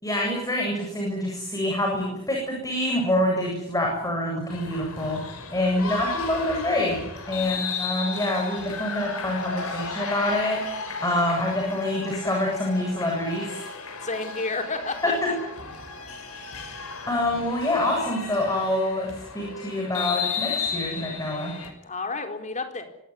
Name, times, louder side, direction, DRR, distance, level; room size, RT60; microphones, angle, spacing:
voice 1, 0.0-10.6 11.0-13.6 15.0-15.3 16.3-16.4 17.1-21.5, left 1 dB, 15° left, 0 dB, 7.8 m, -26 dB
sound 1, 4.5-21.7, left 5 dB, 85° left, 5.8 m, -34 dB
voice 2, 14.0-15.1 21.8-22.8, left 3 dB, 35° left, 6 dB, 4.3 m, -31 dB
25.5 x 18.0 x 9.8 m, 0.81 s
head